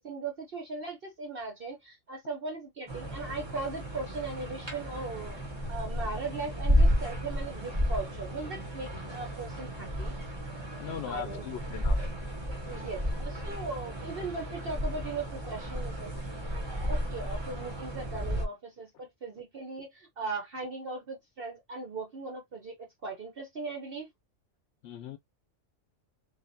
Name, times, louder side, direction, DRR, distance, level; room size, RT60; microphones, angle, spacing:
voice 1, 0.0-5.4 5.7-10.1 11.1-11.4 12.7-16.1 16.5-16.6 16.9-24.1, right 3 dB, 50° right, 1.2 m, -38 dB
sound 1, 2.9-18.4, equal, 25° right, 1.1 m, -32 dB
voice 2, 10.8-12.0 24.8-25.2, left 9 dB, 65° left, 0.8 m, -39 dB
3.5 x 3.3 x 2.7 m
omnidirectional pair, 1.3 m